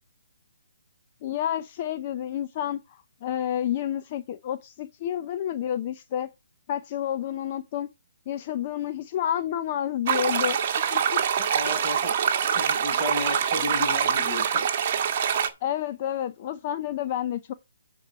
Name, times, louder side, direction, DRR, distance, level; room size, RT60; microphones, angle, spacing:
voice 1, 1.2-6.3 6.7-7.9 8.3-11.2 12.3-12.6 15.6-17.5, left 10 dB, 30° left, 0.5 m, -30 dB
sound 1, 10.1-15.5, right 7 dB, 35° right, 1.4 m, -24 dB
voice 2, 11.4-12.1 12.5-14.6, left 1 dB, 5° right, 5.6 m, -33 dB
10.0 x 4.5 x 5.2 m
hypercardioid pair, 165°, 0 cm